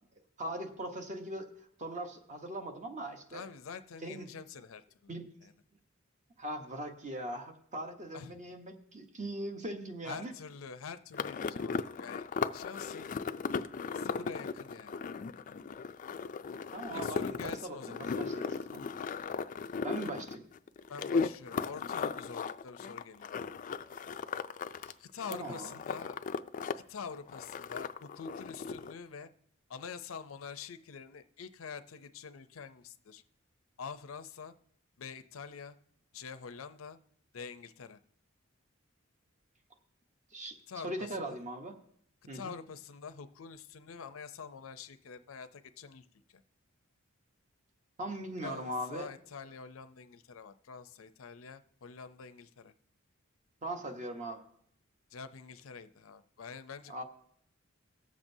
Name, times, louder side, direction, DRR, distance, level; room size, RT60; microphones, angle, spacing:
voice 1, 0.4-1.5 1.8-3.5 4.0-4.3 5.1-5.3 6.4-10.3 16.7-18.8 19.8-20.4 24.8-24.9 25.3-25.7 40.3-40.6 40.8-41.8 42.3-42.5 48.0-49.1 53.6-54.4 56.9-57.0, right 1 dB, 35° right, 5 dB, 1.0 m, -40 dB
voice 2, 3.3-5.2 5.4-5.5 8.1-8.4 10.0-12.3 12.5-13.1 13.9-15.2 16.9-18.1 20.9-23.3 25.0-26.2 26.7-29.3 29.7-33.2 33.8-34.5 35.0-35.8 36.1-37.0 37.3-38.0 40.7-41.4 42.3-46.4 48.4-52.7 55.1-57.0, left 6 dB, 85° left, 11 dB, 0.6 m, -46 dB
sound 1, 11.1-24.9 25.2-26.7 27.0-28.9, left 5 dB, 40° left, 0.3 m, -37 dB
19.0 x 7.4 x 2.7 m, 0.66 s
head